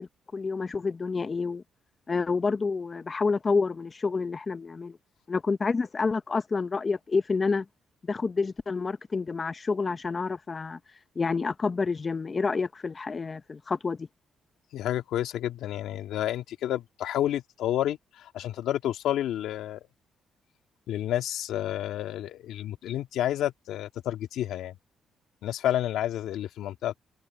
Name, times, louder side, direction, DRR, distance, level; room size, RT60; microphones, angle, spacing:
voice 1, 0.0-1.6 2.1-5.0 5.3-7.7 8.1-10.8 11.2-14.1, left 4 dB, 35° left, 0.6 m, -28 dB
voice 2, 14.7-19.8 20.9-24.7 25.4-27.0, left 12 dB, 80° left, 2.0 m, -30 dB
cardioid pair, 90°, 0 cm